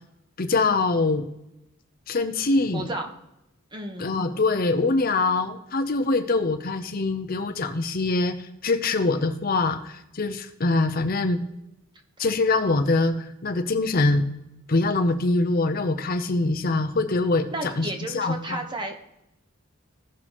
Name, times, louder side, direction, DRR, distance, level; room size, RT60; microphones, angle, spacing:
voice 1, 0.4-1.3 2.1-2.9 4.0-11.4 12.2-14.2 14.7-17.9 18.1-18.6, left 3 dB, 45° left, 7 dB, 0.6 m, -24 dB
voice 2, 2.7-3.1 3.7-4.1 17.5-19.1, right 1 dB, 20° right, 4 dB, 1.1 m, -32 dB
16.0 x 6.0 x 3.0 m, 0.87 s
head